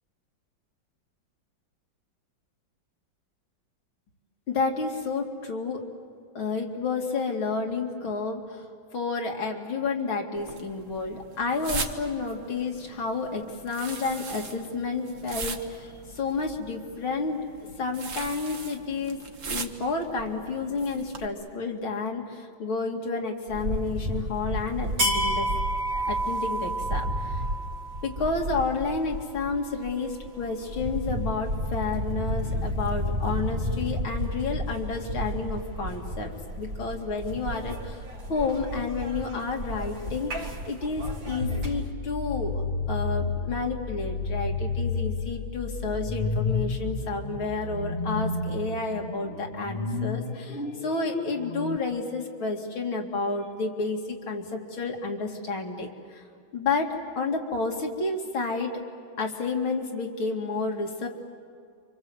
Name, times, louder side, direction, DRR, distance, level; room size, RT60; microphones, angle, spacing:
voice 1, 4.5-5.8 6.3-8.7 8.9-17.4 17.8-19.2 19.4-25.5 25.9-27.4 28.0-42.6 42.9-54.0 54.3-56.2 56.5-58.8 59.2-61.1, left 4 dB, 90° left, 1 dB, 3.3 m, -30 dB
sound 1, 10.4-21.3, right 4 dB, 45° right, 1.5 m, -40 dB
sound 2, 23.5-41.9, equal, 70° right, 3.1 m, -31 dB
sound 3, 41.4-51.8, left 4 dB, 35° left, 1.2 m, -31 dB
29.0 x 25.5 x 8.0 m, 2.2 s
omnidirectional pair, 2.2 m